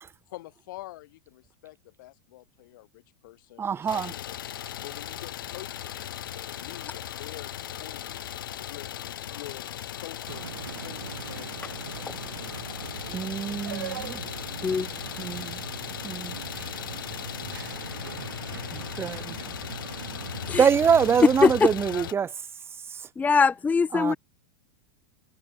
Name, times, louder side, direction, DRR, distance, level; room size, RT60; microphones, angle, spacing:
voice 1, 0.3-4.4 4.8-8.2 8.6-12.2, left 17 dB, 70° left, 5.2 m, -46 dB
voice 2, 3.6-4.1 13.1-14.3 15.2-15.6 16.0-16.3 18.7-19.5 20.6-23.1 23.9-24.2, right 7 dB, 20° right, 1.7 m, -26 dB
Idling, 3.9-22.1, left 12 dB, 85° left, 0.7 m, -38 dB
sound 1, 4.3-18.5, right 21 dB, 65° right, 6.2 m, -58 dB
sound 2, 10.3-21.5, right 10 dB, 90° right, 7.4 m, -40 dB
voice 3, 23.2-24.2, left 5 dB, 15° left, 0.8 m, -21 dB
hypercardioid pair, 120°, 11 cm